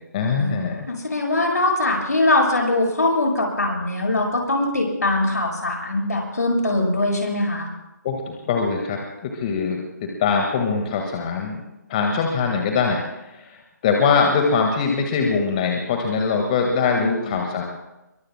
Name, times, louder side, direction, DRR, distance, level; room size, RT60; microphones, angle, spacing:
voice 1, 0.1-0.9 8.0-11.6 11.9-13.0 13.3-13.6 13.8-17.6, left 5 dB, 25° left, 2 dB, 1.7 m, -22 dB
voice 2, 0.9-7.7 16.9-17.4, left 2 dB, 70° left, 0 dB, 7.0 m, -22 dB
25.5 x 23.0 x 2.2 m, 0.99 s
figure-of-eight pair, 150°, 10 cm